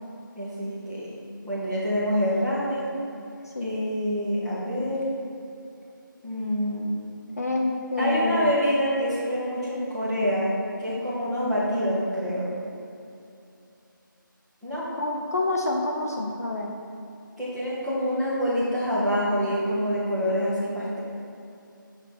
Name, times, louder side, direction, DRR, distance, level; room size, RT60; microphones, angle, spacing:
voice 1, 0.4-1.1 1.4-3.0 3.6-5.0 6.2-7.0 8.0-10.5 10.8-12.5 14.6-14.8 17.4-21.0, equal, ahead, -14 dB, 0.6 m, -26 dB
voice 2, 7.4-8.5 15.0-16.7, left 2 dB, 45° left, 0 dB, 0.7 m, -27 dB
7.0 x 4.9 x 6.0 m, 2.7 s
figure-of-eight pair, 170°, 11 cm